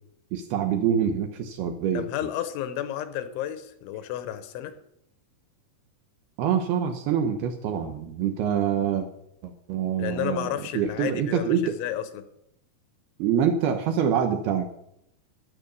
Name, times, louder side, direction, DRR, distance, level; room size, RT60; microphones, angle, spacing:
voice 1, 0.3-2.1 6.4-9.1 9.4-10.5 10.7-11.8 13.2-14.7, right 8 dB, 75° right, 7 dB, 2.4 m, -25 dB
voice 2, 1.9-4.8 10.0-12.2, left 11 dB, 85° left, 11 dB, 3.5 m, -32 dB
12.0 x 11.0 x 6.8 m, 0.76 s
omnidirectional pair, 5.4 m